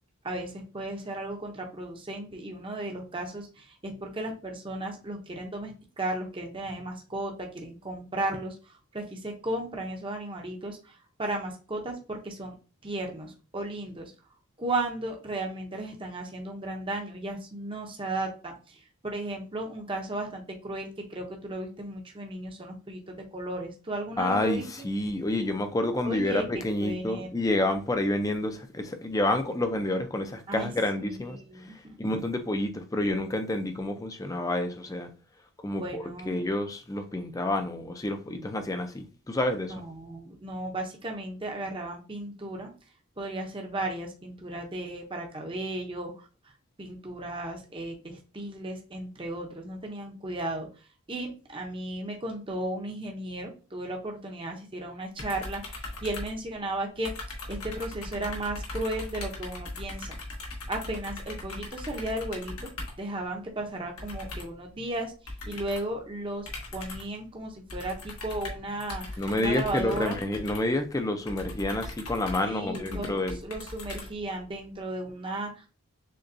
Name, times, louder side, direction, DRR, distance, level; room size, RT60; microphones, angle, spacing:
voice 1, 0.2-12.5 12.8-14.1 14.6-24.9 25.9-27.4 30.5-30.7 31.0-32.0 35.7-36.4 39.6-42.7 43.2-46.3 46.8-57.1 57.5-60.1 60.7-62.7 63.0-65.1 65.4-70.2 72.4-75.7, right 1 dB, 25° right, 0.7 m, -35 dB
voice 2, 24.2-35.1 35.6-39.7 69.2-73.4, left 1 dB, 15° left, 0.4 m, -29 dB
sound 1, 55.2-56.8 57.0-63.1 64.0-64.6 65.3-65.9 66.5-67.2 67.7-74.5, left 2 dB, 90° left, 1.3 m, -39 dB
6.5 x 2.3 x 2.6 m
head